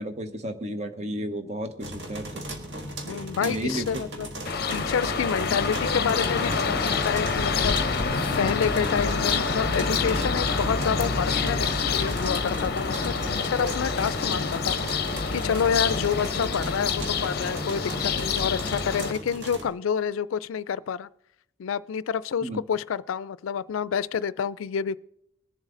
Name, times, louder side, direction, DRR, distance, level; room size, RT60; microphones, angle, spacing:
voice 1, 0.0-2.5 3.4-3.9 22.4-22.6, right 1 dB, 35° right, 0.9 m, -32 dB
sound 1, 1.8-19.7, equal, 55° right, 1.6 m, -36 dB
voice 2, 3.1-4.3 4.7-14.8 15.3-21.1 21.6-25.0, left 7 dB, 85° left, 0.4 m, -28 dB
sound 2, 4.4-19.1, left 4 dB, 50° left, 0.7 m, -27 dB
21.5 x 7.3 x 3.8 m
head